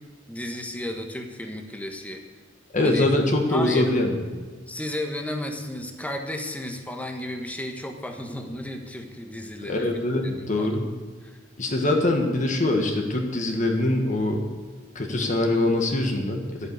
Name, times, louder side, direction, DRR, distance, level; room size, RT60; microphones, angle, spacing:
voice 1, 0.3-2.2 2.8-3.1 3.5-4.0 4.7-9.8 10.2-10.7 11.2-11.4, left 1 dB, 10° left, 4 dB, 1.3 m, -33 dB
voice 2, 2.7-4.2 9.6-10.8 11.6-14.4 14.9-16.7, left 2 dB, 40° left, 2 dB, 1.6 m, -23 dB
12.0 x 8.3 x 8.2 m, 1.4 s
head